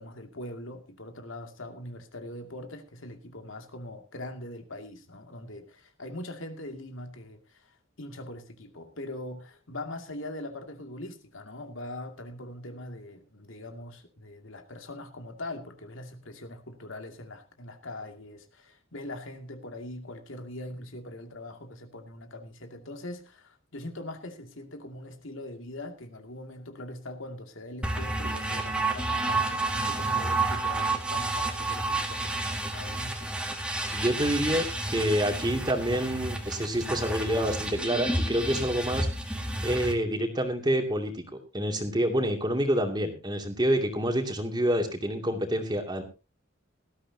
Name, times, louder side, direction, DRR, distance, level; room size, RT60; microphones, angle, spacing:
voice 1, 0.0-33.3, left 1 dB, 75° left, 5 dB, 2.4 m, -42 dB
sound 1, 27.8-39.9, right 2 dB, 5° right, 2.0 m, -30 dB
voice 2, 33.9-39.1 39.6-41.2 41.5-46.0, equal, 20° right, 4 dB, 2.5 m, -27 dB
18.5 x 13.5 x 2.8 m, 0.29 s
head